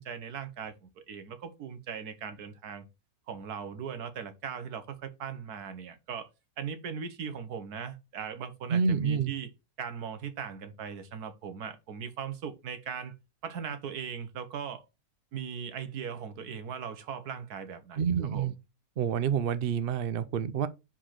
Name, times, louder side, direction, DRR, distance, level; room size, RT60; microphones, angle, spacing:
voice 1, 0.0-2.8 3.3-6.3 6.6-9.5 9.8-13.1 13.4-14.8 15.3-18.5, right 7 dB, 75° right, 1.5 m, -39 dB
voice 2, 8.7-9.3 18.0-18.6 19.0-20.7, right 7 dB, 60° right, 0.6 m, -28 dB
5.0 x 4.3 x 5.7 m
omnidirectional pair, 1.7 m